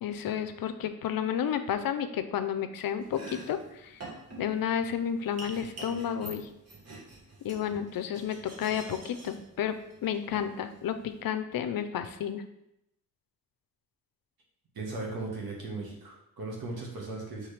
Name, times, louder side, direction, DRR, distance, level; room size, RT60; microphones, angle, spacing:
voice 1, 0.0-4.0 4.4-6.5 7.4-12.4, left 9 dB, 70° left, 10 dB, 0.5 m, -31 dB
Domestic sounds home sounds, 3.0-11.2, right 2 dB, 45° right, 1.3 m, -47 dB
voice 2, 14.7-17.5, right 3 dB, 80° right, -2 dB, 1.3 m, -37 dB
4.7 x 3.3 x 3.2 m, 0.81 s
cardioid pair, 80°, 36 cm